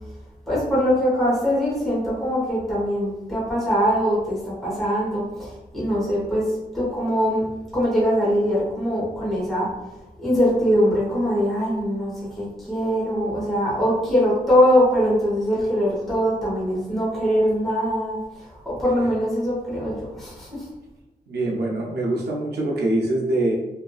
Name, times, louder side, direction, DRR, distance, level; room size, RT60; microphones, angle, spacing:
voice 1, 0.5-7.5 7.7-9.7 10.2-20.7, equal, ahead, -10 dB, 0.9 m, -22 dB
voice 2, 21.3-23.5, right 1 dB, 85° right, -2 dB, 0.5 m, -24 dB
2.7 x 2.4 x 2.3 m, 1.0 s
wide cardioid pair, 170°, 16 cm